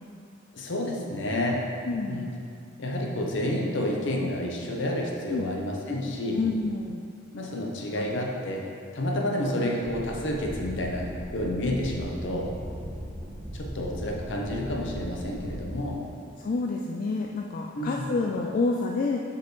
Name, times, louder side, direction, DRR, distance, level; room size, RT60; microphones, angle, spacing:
voice 1, 0.5-1.7 2.1-2.3 2.8-6.4 7.3-8.6 8.9-12.5 13.5-16.0 17.7-18.1, left 1 dB, 60° left, -1 dB, 0.8 m, -30 dB
voice 2, 1.8-2.4 5.3-5.5 6.3-7.0 8.0-8.1 16.4-19.2, left 3 dB, 45° left, 0 dB, 0.3 m, -28 dB
sound 1, 9.8-15.6, equal, 5° right, 1.4 m, -38 dB
6.8 x 5.1 x 3.1 m, 2.4 s
head